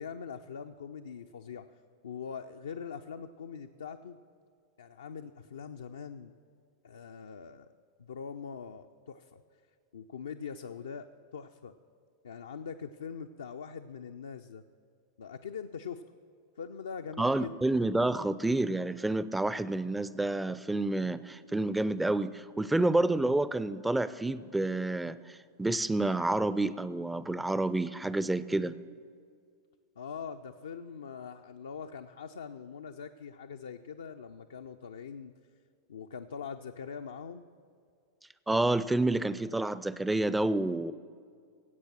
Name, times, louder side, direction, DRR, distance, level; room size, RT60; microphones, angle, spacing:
voice 1, 0.0-1.7 2.0-4.2 4.8-6.3 6.8-7.7 8.0-9.4 9.9-11.8 12.2-14.6 15.2-16.0 16.6-17.5 30.0-35.3 35.9-37.5, left 6 dB, 65° left, 6 dB, 0.4 m, -42 dB
voice 2, 17.2-28.7 38.5-40.9, right 2 dB, 5° right, 16 dB, 0.4 m, -29 dB
17.0 x 8.3 x 6.2 m, 2.2 s
figure-of-eight pair, 90°, 0 cm